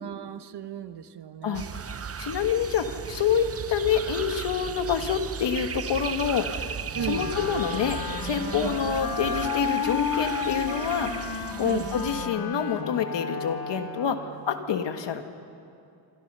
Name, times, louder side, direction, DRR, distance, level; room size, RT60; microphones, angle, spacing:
voice 1, 0.0-1.6 6.9-7.4 8.6-8.7 11.6-11.9, right 9 dB, 60° right, 10 dB, 1.2 m, -35 dB
voice 2, 1.4-11.1 11.6-15.2, left 7 dB, 70° left, 7 dB, 1.8 m, -27 dB
sound 1, 1.5-12.3, right 7 dB, 30° right, 0.8 m, -36 dB
Wind instrument woodwind instrument, 6.9-14.3, left 5 dB, 50° left, 2.5 m, -32 dB
26.5 x 25.0 x 5.6 m, 2.6 s
cardioid pair, 100°, 45 cm